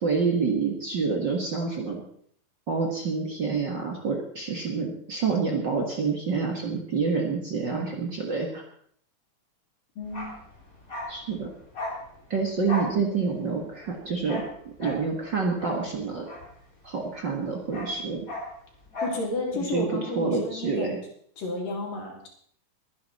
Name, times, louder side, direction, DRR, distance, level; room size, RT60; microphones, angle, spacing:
voice 1, 0.0-2.0 2.7-8.6 11.1-11.5 12.3-14.4 14.8-16.3 16.8-18.3 19.5-19.9 20.2-21.0, right 4 dB, 45° right, 1 dB, 1.7 m, -27 dB
voice 2, 10.0-10.3 19.0-20.9 21.4-22.3, left 2 dB, 75° left, 0 dB, 4.7 m, -32 dB
Bark, 10.0-17.1 17.3-19.3 19.5-19.7, left 1 dB, 25° left, 3.8 m, -37 dB
22.0 x 10.0 x 4.2 m, 0.63 s
omnidirectional pair, 3.9 m